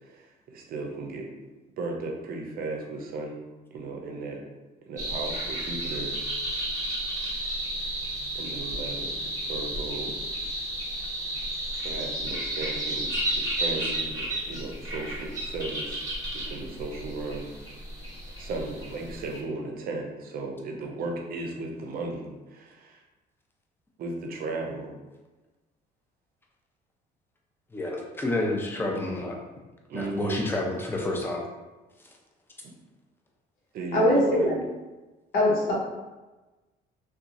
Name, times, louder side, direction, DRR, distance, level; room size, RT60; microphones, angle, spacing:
voice 1, 0.0-1.3 1.8-3.4 3.7-4.4 4.9-6.2 6.4-6.7 8.3-10.2 11.8-16.0 16.3-17.5 18.4-23.0 24.0-24.9 29.9-30.5 33.7-34.5, right 3 dB, 60° right, 2 dB, 0.6 m, -35 dB
sound 1, 5.0-19.4, right 1 dB, 20° right, 1.0 m, -32 dB
voice 2, 27.7-29.4 29.9-31.4, left 2 dB, 15° left, 0 dB, 0.5 m, -29 dB
voice 3, 33.9-34.6 35.3-35.7, left 1 dB, 80° left, -5 dB, 0.9 m, -21 dB
2.8 x 2.3 x 2.6 m, 1.2 s
cardioid pair, 110°, 17 cm